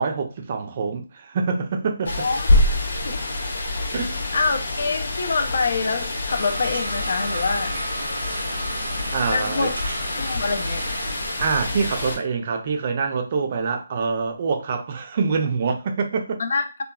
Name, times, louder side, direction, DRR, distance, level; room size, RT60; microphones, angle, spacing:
voice 1, 0.0-2.3 3.9-4.2 9.1-9.7 11.4-16.4, right 5 dB, 40° right, 0.4 m, -25 dB
sound 1, 2.0-12.2, left 1 dB, 80° left, 0.9 m, -26 dB
voice 2, 2.1-2.5 3.0-3.2 4.3-7.8 9.3-9.8 10.2-10.8 16.4-16.8, left 4 dB, 60° left, 0.4 m, -25 dB
sound 2, 6.3-11.5, right 2 dB, 75° right, 0.7 m, -33 dB
2.9 x 2.3 x 2.3 m
hypercardioid pair, 165°, 0 cm